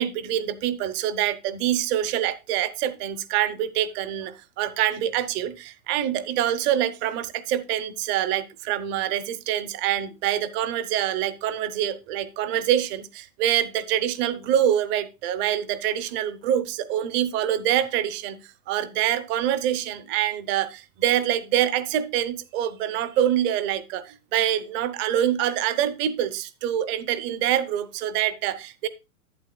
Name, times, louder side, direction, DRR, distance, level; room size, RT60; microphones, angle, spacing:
voice 1, 0.0-28.9, right 11 dB, 25° right, 15 dB, 0.7 m, -25 dB
11.0 x 8.5 x 2.2 m, 0.28 s
hypercardioid pair, 135°, 43 cm